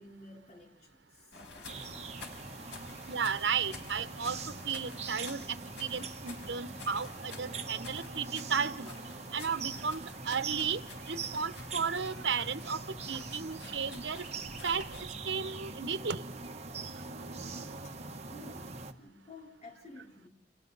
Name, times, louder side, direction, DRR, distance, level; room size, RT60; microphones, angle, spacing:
voice 1, 0.0-1.7 2.6-2.7 17.8-20.3, left 2 dB, 40° left, 4.2 m, -53 dB
sound 1, 1.3-15.1, left 3 dB, 75° left, 4.8 m, -50 dB
sound 2, 1.7-18.9, right 4 dB, 40° right, 1.4 m, -43 dB
voice 2, 3.1-4.4 4.6-8.9 9.3-10.8 11.1-12.8 13.1-14.2 14.6-14.9 15.3-16.2, right 6 dB, 80° right, 1.0 m, -34 dB
30.0 x 28.0 x 4.1 m
head